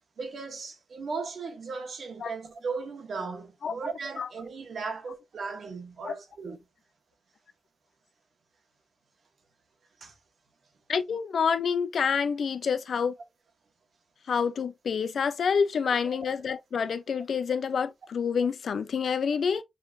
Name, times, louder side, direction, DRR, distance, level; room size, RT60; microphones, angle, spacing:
voice 1, 0.2-6.6 10.0-10.1, right 4 dB, 75° right, 1.5 m, -37 dB
voice 2, 10.9-13.2 14.3-19.6, left 6 dB, 75° left, 0.5 m, -27 dB
5.6 x 3.2 x 2.6 m
cardioid pair, 75°, 0 cm